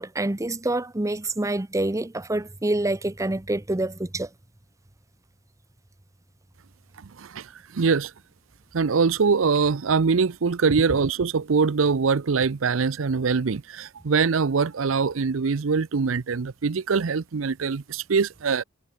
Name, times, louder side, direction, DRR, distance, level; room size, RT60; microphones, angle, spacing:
voice 1, 0.0-4.3, right 2 dB, 15° right, 0.7 m, -27 dB
voice 2, 7.7-8.1 8.7-18.6, right 5 dB, 75° right, 0.6 m, -23 dB
head